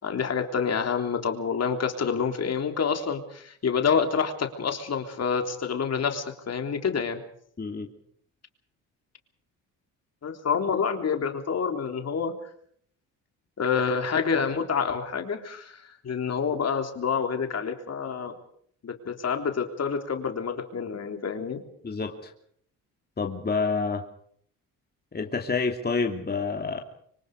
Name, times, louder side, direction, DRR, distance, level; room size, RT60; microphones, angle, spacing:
voice 1, 0.0-7.2 10.2-12.4 13.6-18.3 18.8-21.6, left 6 dB, 45° left, 5 dB, 3.5 m, -28 dB
voice 2, 7.6-7.9 21.8-22.3 23.2-24.0 25.1-26.8, left 4 dB, 30° left, 3 dB, 3.0 m, -28 dB
25.5 x 24.5 x 4.9 m, 0.63 s
supercardioid pair, 70°, 35 cm